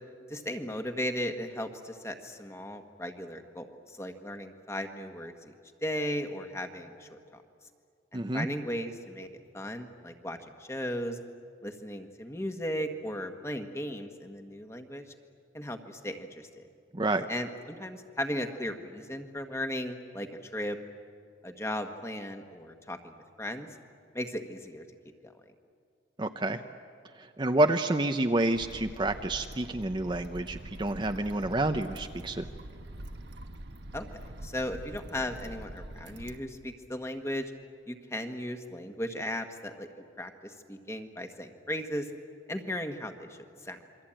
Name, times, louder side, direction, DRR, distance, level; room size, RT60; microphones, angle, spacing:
voice 1, 0.3-5.5 5.8-7.4 8.1-9.3 9.5-11.2 11.6-15.0 15.5-16.6 17.3-20.8 21.4-23.7 24.1-24.8 25.2-25.3 33.9-37.5 37.9-42.1 42.5-43.8, left 1 dB, 15° left, 6 dB, 1.5 m, -36 dB
voice 2, 8.1-8.5 16.9-17.2 26.2-26.6 27.2-32.4, right 2 dB, 25° right, 7 dB, 0.7 m, -28 dB
sound 1, 28.5-36.4, right 1 dB, 65° right, 1.2 m, -44 dB
27.5 x 23.5 x 8.9 m, 2.3 s
head